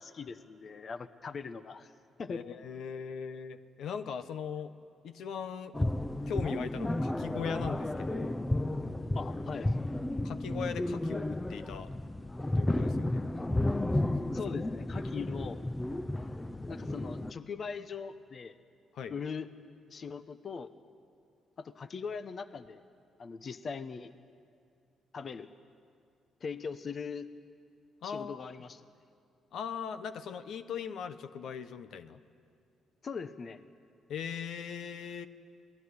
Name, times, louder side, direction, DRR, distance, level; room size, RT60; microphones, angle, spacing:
voice 1, 0.0-1.9 2.2-2.4 9.1-9.7 14.3-15.6 16.7-18.6 19.1-19.5 19.9-20.7 21.6-22.8 23.2-24.1 25.1-25.5 26.4-27.3 28.0-28.8 33.0-33.6, left 5 dB, 45° left, 11 dB, 0.9 m, -40 dB
voice 2, 2.3-4.7 5.0-5.7 6.3-8.4 10.2-11.9 12.5-13.2 13.9-14.0 14.5-14.6 18.9-19.1 28.0-28.5 29.5-32.2 34.1-35.3, left 7 dB, 70° left, 11 dB, 1.0 m, -39 dB
sound 1, 5.7-17.3, left 1 dB, 15° left, 0.7 m, -33 dB
27.0 x 19.0 x 9.7 m, 2.4 s
cardioid pair, 90°, 0 cm